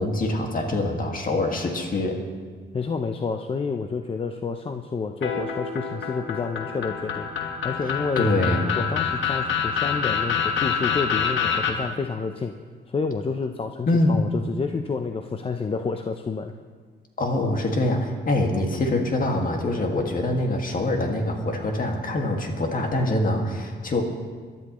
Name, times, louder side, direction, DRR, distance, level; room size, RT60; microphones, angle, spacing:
voice 1, 0.0-2.2 7.8-8.7 13.9-14.2 17.2-24.0, left 2 dB, 45° left, 2 dB, 1.9 m, -24 dB
voice 2, 2.7-8.3 8.8-12.5 12.9-16.5, left 4 dB, 30° left, 5 dB, 0.6 m, -29 dB
sound 1, 5.2-11.7, left 7 dB, 75° left, 1.5 m, -26 dB
22.0 x 12.0 x 3.1 m, 1.5 s
cardioid pair, 110°, 20 cm